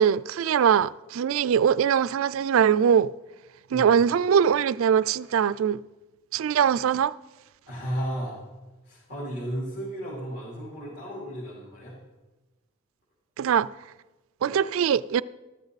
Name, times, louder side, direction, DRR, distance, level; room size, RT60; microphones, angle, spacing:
voice 1, 0.0-3.1 3.7-5.8 6.3-7.1 13.4-13.7 14.4-15.2, right 8 dB, 65° right, 0.3 m, -22 dB
voice 2, 7.7-8.4 8.8-11.9, equal, 50° left, 3.7 m, -34 dB
13.5 x 13.0 x 4.1 m
head